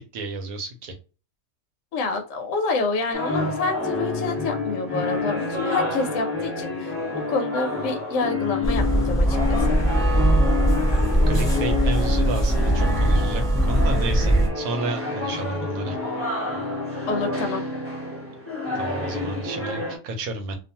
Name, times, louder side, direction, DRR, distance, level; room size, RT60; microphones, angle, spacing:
voice 1, 0.1-0.9 10.9-16.0 18.7-20.6, right 2 dB, 85° right, 5 dB, 1.1 m, -31 dB
voice 2, 1.9-6.9 7.3-9.8 17.1-17.6, left 3 dB, 70° left, 4 dB, 0.9 m, -28 dB
sound 1, 3.1-20.0, left 2 dB, 10° right, 0.8 m, -28 dB
sound 2, 8.6-14.5, right 1 dB, 5° left, 0.5 m, -20 dB
2.5 x 2.3 x 2.7 m, 0.33 s
omnidirectional pair, 1.5 m